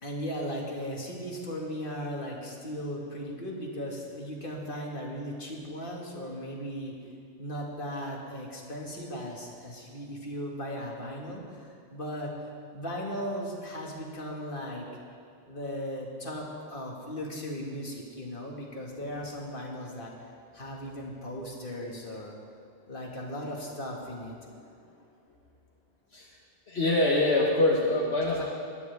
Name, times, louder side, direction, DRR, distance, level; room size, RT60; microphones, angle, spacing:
voice 1, 0.0-6.9 7.4-12.3 12.7-14.8 15.5-22.3 22.9-24.3, equal, 50° left, -2 dB, 2.2 m, -37 dB
voice 2, 26.7-28.4, left 2 dB, 65° left, -5 dB, 1.6 m, -24 dB
20.0 x 12.5 x 3.5 m, 2.4 s
omnidirectional pair, 1.2 m